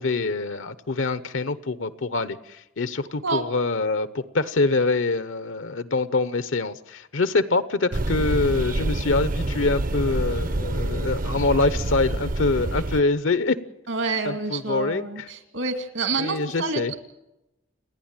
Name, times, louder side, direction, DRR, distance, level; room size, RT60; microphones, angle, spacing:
voice 1, 0.0-13.6 14.2-15.3 16.2-16.9, left 3 dB, 75° left, 14 dB, 0.9 m, -25 dB
sound 1, 7.9-13.0, right 1 dB, 40° right, 0.7 m, -27 dB
voice 2, 13.9-17.0, right 4 dB, 75° right, 7 dB, 2.4 m, -28 dB
29.5 x 10.5 x 8.9 m, 0.93 s
head